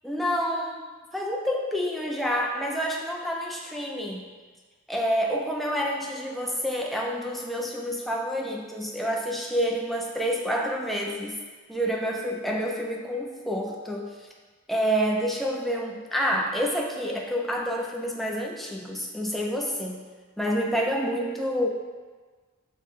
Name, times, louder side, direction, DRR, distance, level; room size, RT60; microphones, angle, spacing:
voice 1, 0.0-0.9 1.1-4.3 4.9-11.4 11.7-14.1 14.7-20.0 20.4-21.7, equal, ahead, -1 dB, 0.4 m, -28 dB
6.4 x 2.1 x 3.6 m, 1.4 s
head